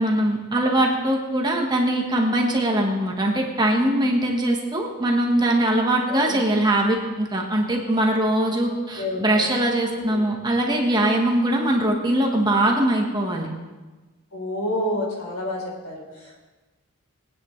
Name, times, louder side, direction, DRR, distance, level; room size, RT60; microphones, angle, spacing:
voice 1, 0.0-13.5, right 1 dB, 20° right, 0 dB, 1.3 m, -21 dB
voice 2, 9.0-9.5 9.9-10.2 14.3-16.4, left 1 dB, 70° left, -1 dB, 3.7 m, -29 dB
21.0 x 9.4 x 3.2 m, 1.2 s
head